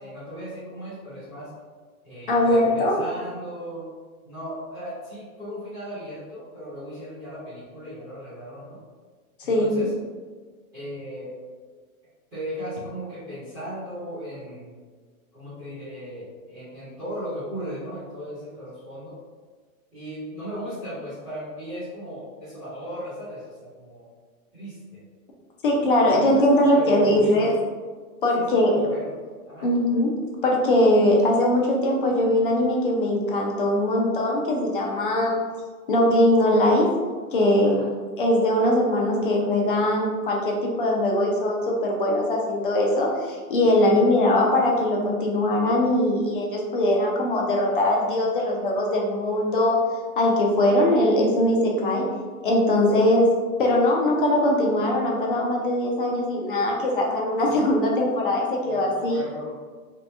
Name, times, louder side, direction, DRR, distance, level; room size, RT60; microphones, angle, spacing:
voice 1, 0.0-1.5 2.0-3.9 4.2-8.8 9.4-9.9 10.7-11.3 12.3-14.7 15.3-19.1 19.9-24.0 24.5-25.0 26.1-27.6 28.3-29.2 29.4-29.7 37.6-37.9 44.0-44.1 52.9-53.1 57.4-57.6 58.6-59.5, equal, 5° right, -17 dB, 0.6 m, -37 dB
voice 2, 2.3-3.0 9.4-9.8 25.6-27.5 28.2-28.8 29.6-30.1 30.4-35.4 35.9-36.9 37.3-37.8 38.2-49.8 50.2-52.1 52.4-53.3 53.6-59.2, left 1 dB, 40° left, -1 dB, 0.5 m, -21 dB
2.9 x 2.4 x 3.3 m, 1.5 s
hypercardioid pair, 170°, 44 cm